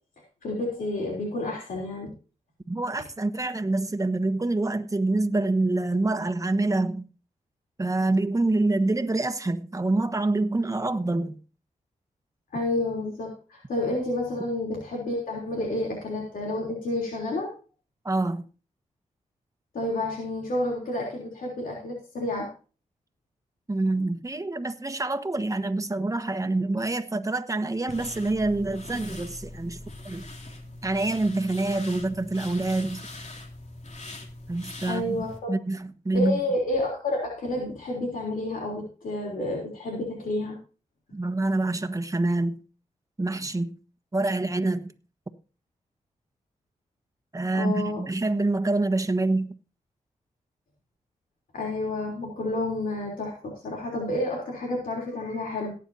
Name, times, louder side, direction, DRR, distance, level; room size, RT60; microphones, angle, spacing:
voice 1, 0.4-2.1 12.5-17.5 19.7-22.5 34.9-35.5 36.1-40.6 47.5-48.0 51.5-55.7, left 2 dB, 80° left, 3.4 m, -30 dB
voice 2, 2.7-7.0 7.8-11.4 18.0-18.4 23.7-29.8 30.0-30.3 30.8-33.0 34.5-36.4 41.1-42.6 43.2-43.7 44.1-44.9 47.3-49.5, right 2 dB, 25° right, 1.3 m, -26 dB
sound 1, 27.9-35.4, left 2 dB, 55° left, 2.9 m, -42 dB
18.0 x 9.1 x 2.8 m
cardioid pair, 50°, 14 cm